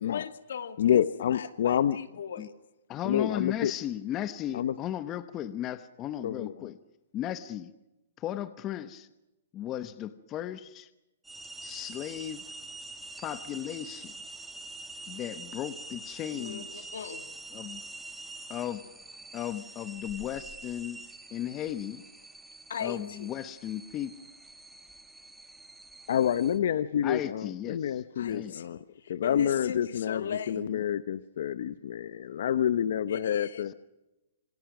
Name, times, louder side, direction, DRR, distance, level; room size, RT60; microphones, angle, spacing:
voice 1, 0.1-1.0 1.3-2.5 16.3-17.3 22.7-23.3 28.2-30.6 33.1-33.7, left 7 dB, 70° left, 9 dB, 2.5 m, -39 dB
voice 2, 0.8-2.0 3.0-3.7 4.5-4.7 6.2-6.7 26.1-28.8 29.1-33.7, left 10 dB, 55° left, 14 dB, 0.9 m, -28 dB
voice 3, 2.9-6.8 7.1-7.7 8.2-9.1 9.5-10.9 11.6-12.4 13.2-14.1 15.1-16.9 17.5-17.8 18.5-18.8 19.3-21.0 21.3-22.0 22.8-24.1 27.0-28.0 28.3-28.5 30.5-30.8, left 11 dB, 20° left, 12 dB, 0.9 m, -36 dB
sound 1, 11.2-26.6, right 3 dB, 5° right, 1.3 m, -45 dB
27.5 x 26.0 x 6.1 m, 0.97 s
hypercardioid pair, 170°, 0 cm